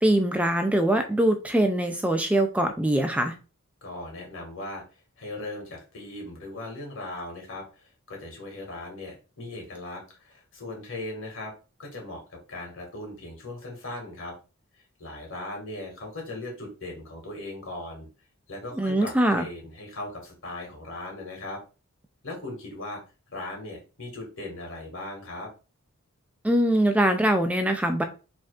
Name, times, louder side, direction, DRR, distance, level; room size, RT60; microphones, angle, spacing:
voice 1, 0.0-3.3 18.8-19.4 26.4-28.0, right 1 dB, 5° right, 6 dB, 0.4 m, -23 dB
voice 2, 3.8-4.8 5.2-11.5 11.8-14.4 15.0-18.1 18.5-21.6 22.2-23.0 23.3-25.5, left 2 dB, 65° left, 1 dB, 2.0 m, -38 dB
5.0 x 3.6 x 2.4 m, 0.33 s
head